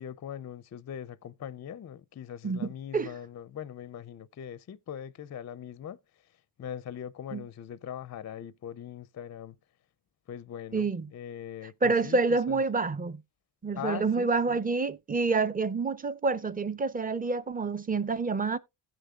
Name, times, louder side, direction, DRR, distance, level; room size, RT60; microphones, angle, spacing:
voice 1, 0.0-6.0 6.6-9.6 10.3-12.2 12.5-12.6 13.8-14.6, left 9 dB, 35° left, 0.4 m, -41 dB
voice 2, 2.4-3.1 7.3-7.4 10.7-11.0 11.8-13.2 13.6-18.6, right 4 dB, 20° right, 0.5 m, -28 dB
16.5 x 6.7 x 2.3 m
cardioid pair, 110°, 49 cm